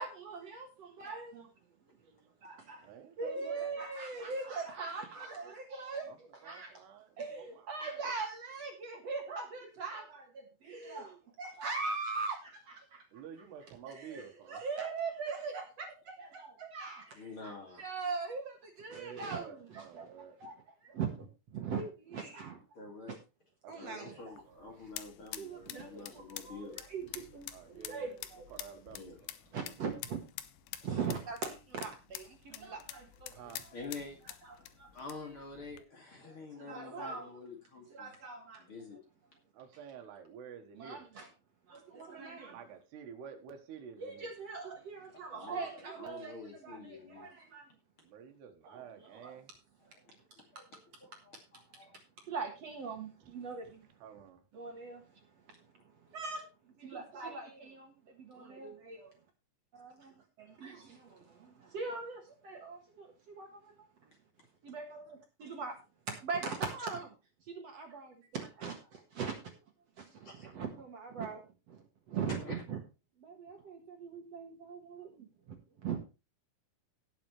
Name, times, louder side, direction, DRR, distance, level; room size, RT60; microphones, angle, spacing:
voice 1, 0.0-1.5 1.9-2.9 3.2-6.8 7.2-13.2 13.6-22.6 23.7-24.4 25.4-28.5 29.5-30.2 30.8-33.7 34.4-34.9 36.2-37.3 37.9-38.7 40.8-41.3 41.7-42.6 44.0-47.7 48.6-49.4 52.2-54.0 54.5-56.5 56.8-59.0 59.8-60.1 60.4-64.1 64.6-65.7 66.1-67.1 67.4-69.6 70.0-72.8 73.2-76.0, right 5 dB, 50° right, 3 dB, 2.2 m, -41 dB
voice 2, 2.6-3.6 6.4-7.1 7.4-7.5 7.9-8.1 13.1-14.6 18.9-20.4 23.8-24.8 27.5-28.1 28.5-29.3 33.3-33.7 39.5-41.0 42.5-44.3 48.0-49.5 54.0-54.4, right 7 dB, 85° right, 6 dB, 3.6 m, -50 dB
voice 3, 17.1-17.8 22.7-23.2 23.7-26.8 28.9-29.2 30.8-31.0 33.7-34.2 34.5-34.7 34.9-38.1 38.6-39.0 45.3-45.7 46.0-47.3 49.8-52.0 56.1-56.2 58.3-58.5 70.2-70.5 72.3-72.5, left 3 dB, 40° left, 1 dB, 2.7 m, -48 dB
sound 1, 24.2-35.8, left 13 dB, 90° left, 3.0 m, -48 dB
18.0 x 7.2 x 3.2 m, 0.30 s
omnidirectional pair, 4.6 m